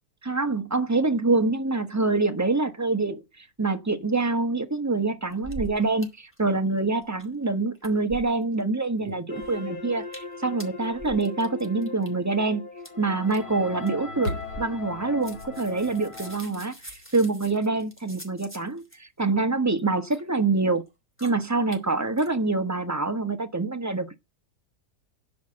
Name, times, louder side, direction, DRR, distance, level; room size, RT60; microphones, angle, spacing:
voice 1, 0.2-12.7 13.0-20.8 21.2-24.1, right 3 dB, 15° right, 0.8 m, -26 dB
sound 1, 5.3-6.1 6.3-6.4 6.7-7.5 7.7-8.6 9.0-9.6 10.0-10.3 10.6-12.1 12.8-12.9 13.3-13.5 13.9-14.0 14.2-15.0 15.2-19.0 19.7-20.2 20.8-20.9 21.2-21.3 21.7-21.8 22.2-22.3, right 2 dB, 5° left, 2.9 m, -42 dB
sound 2, 9.3-16.4, left 4 dB, 30° left, 1.4 m, -39 dB
sound 3, 14.2-18.5, left 1 dB, 85° left, 2.3 m, -40 dB
13.0 x 5.2 x 7.8 m
omnidirectional pair, 1.8 m